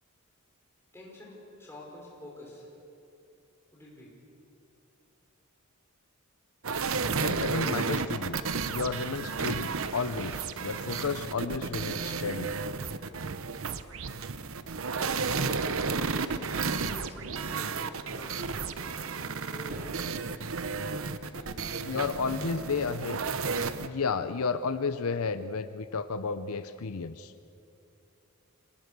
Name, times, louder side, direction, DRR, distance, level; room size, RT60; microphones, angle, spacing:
voice 1, 0.9-2.7 3.7-4.1 14.9-15.7 16.1-18.5 19.5-20.0 21.2-22.1, left 1 dB, 10° left, -4 dB, 5.5 m, -47 dB
sound 1, 6.6-23.9, right 4 dB, 65° right, 0.8 m, -32 dB
voice 2, 7.2-8.4 8.6-12.5 21.9-23.2 23.8-27.3, left 4 dB, 80° left, 12 dB, 0.7 m, -32 dB
26.0 x 19.0 x 6.8 m, 2.7 s
head